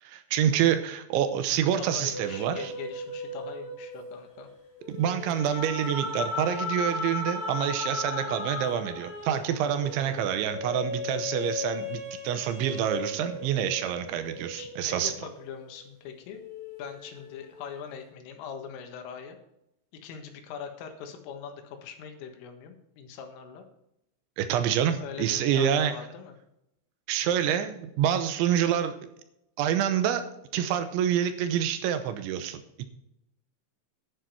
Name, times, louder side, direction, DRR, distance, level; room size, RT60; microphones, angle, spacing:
voice 1, 0.0-2.7 4.9-15.1 24.4-25.9 27.1-29.0 29.6-30.3 30.5-32.9, right 9 dB, 80° right, 10 dB, 3.0 m, -27 dB
voice 2, 1.9-4.5 14.6-16.4 16.8-19.4 19.9-23.7 25.0-26.4, left 7 dB, 85° left, 5 dB, 4.1 m, -42 dB
sound 1, 2.1-15.9 16.3-17.9, left 2 dB, 20° left, 1.5 m, -36 dB
11.5 x 9.3 x 4.6 m, 0.82 s
omnidirectional pair, 5.8 m